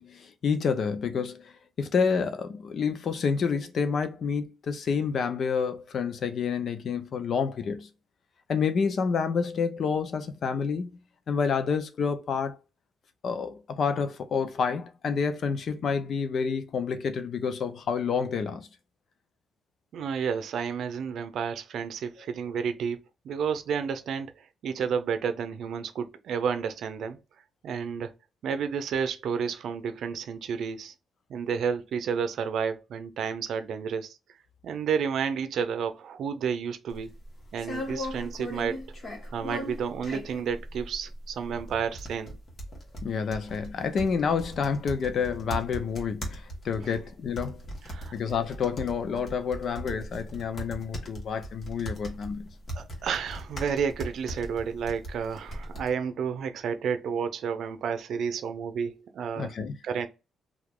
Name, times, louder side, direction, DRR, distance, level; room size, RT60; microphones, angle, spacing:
voice 1, 0.0-1.5 1.8-7.9 8.5-10.9 11.3-12.6 13.2-18.7 43.0-47.6 48.1-52.5 59.4-59.7, left 6 dB, 55° left, 0.6 m, -29 dB
voice 2, 19.9-23.0 23.2-27.2 27.6-28.1 28.4-30.9 31.3-34.2 34.6-37.1 37.5-38.8 39.3-42.4 46.8-47.0 47.8-48.1 52.7-59.6 59.8-60.1, right 6 dB, 70° right, 0.5 m, -31 dB
sound 1, 36.9-55.9, equal, 40° left, 1.3 m, -39 dB
2.9 x 2.4 x 3.6 m
cardioid pair, 90°, 0 cm